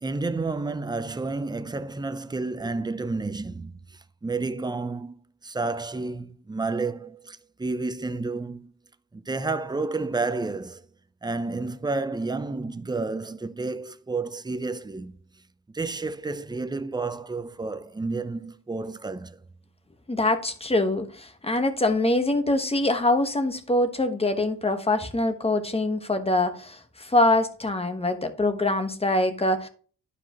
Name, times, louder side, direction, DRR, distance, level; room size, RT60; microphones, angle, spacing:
voice 1, 0.0-8.7 9.1-10.9 11.2-15.2 15.7-19.4, right 3 dB, 10° right, 0.5 m, -31 dB
voice 2, 20.1-29.7, left 2 dB, 15° left, 1.1 m, -24 dB
11.5 x 4.9 x 2.9 m
cardioid pair, 90°, 37 cm